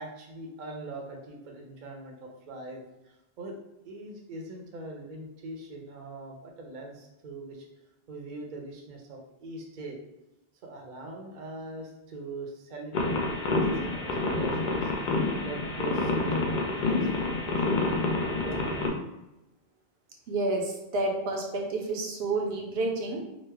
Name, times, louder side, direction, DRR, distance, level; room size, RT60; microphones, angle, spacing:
voice 1, 0.0-3.6 3.8-7.7 8.1-10.0 10.6-17.5 18.4-19.0, right 2 dB, 55° right, 1 dB, 0.7 m, -42 dB
sound 1, 12.9-18.9, left 2 dB, 60° left, 0.6 m, -28 dB
voice 2, 20.3-23.2, right 2 dB, 80° right, 1 dB, 0.9 m, -29 dB
3.0 x 2.1 x 3.3 m, 0.95 s
omnidirectional pair, 1.0 m